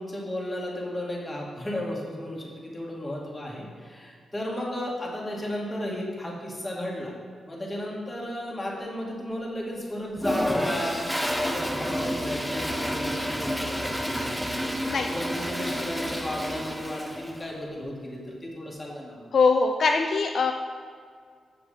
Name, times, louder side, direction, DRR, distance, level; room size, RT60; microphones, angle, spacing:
voice 1, 0.0-7.1 7.5-19.3, left 1 dB, 15° left, -3 dB, 2.3 m, -34 dB
Toilet flush, 10.2-17.4, equal, 5° right, 0.9 m, -30 dB
voice 2, 14.8-15.1 19.3-20.5, left 4 dB, 60° left, 4 dB, 0.5 m, -22 dB
7.2 x 6.8 x 5.2 m, 2.1 s
cardioid pair, 65°, 0 cm